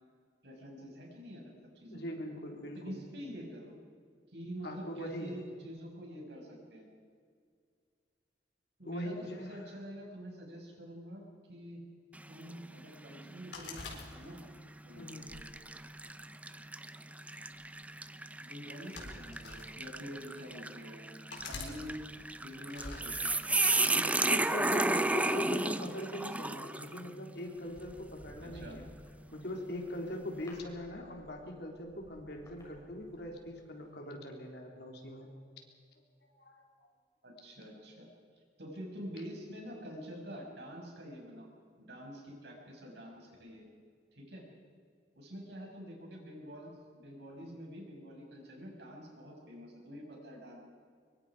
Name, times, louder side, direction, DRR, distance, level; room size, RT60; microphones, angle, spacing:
voice 1, 0.4-2.0 2.7-3.7 4.3-6.9 8.8-11.2 11.5-11.8 12.3-14.4 14.8-15.5 18.4-22.0 22.4-25.8 28.4-28.8 37.2-38.1 38.3-41.5 41.8-43.6 44.1-44.4 45.1-50.6, equal, 65° right, -1 dB, 6.6 m, -47 dB
voice 2, 1.9-3.0 4.6-5.4 8.8-9.7 15.0-15.3 23.9-28.9 29.3-35.3 36.2-36.9, left 1 dB, 65° left, 2 dB, 3.6 m, -42 dB
sound 1, 12.1-12.6 13.1-13.3 14.2-14.5 15.1-27.1, right 2 dB, 10° right, 0.6 m, -33 dB
sound 2, 13.5-14.6 15.2-16.4 17.3-17.6 18.6-19.7 20.4-20.5 21.3-21.7 22.7-23.1, left 3 dB, 85° left, 4.3 m, -45 dB
sound 3, 23.7-24.7 26.6-26.9 27.3-33.5 33.8-33.9, equal, 20° left, 5.8 m, -57 dB
24.0 x 23.5 x 5.0 m, 2.1 s
head